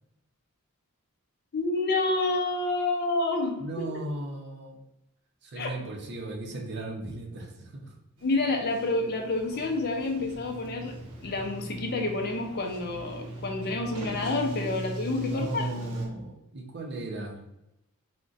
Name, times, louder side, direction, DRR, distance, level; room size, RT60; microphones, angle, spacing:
voice 1, 1.5-3.9 5.6-5.7 8.2-10.9 11.2-15.7, left 2 dB, 45° left, 3 dB, 0.4 m, -29 dB
voice 2, 3.6-4.8 5.4-7.9 15.1-17.4, right 2 dB, 50° right, 1 dB, 0.5 m, -37 dB
Sliding door, 8.2-16.1, right 1 dB, 85° right, 0.7 m, -39 dB
2.4 x 2.1 x 3.8 m, 0.84 s
head